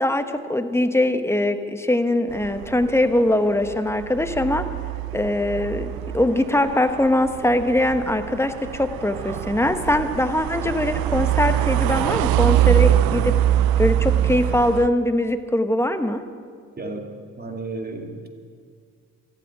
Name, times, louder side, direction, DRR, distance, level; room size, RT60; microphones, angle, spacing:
voice 1, 0.0-4.7 5.1-13.3 13.8-16.2, left 1 dB, 5° left, 8 dB, 1.1 m, -22 dB
sound 1, 2.3-14.9, right 12 dB, 85° right, 0.6 m, -24 dB
voice 2, 16.8-18.3, right 2 dB, 25° right, 3 dB, 2.3 m, -33 dB
14.0 x 8.1 x 9.9 m, 2.1 s
supercardioid pair, 65°, 35 cm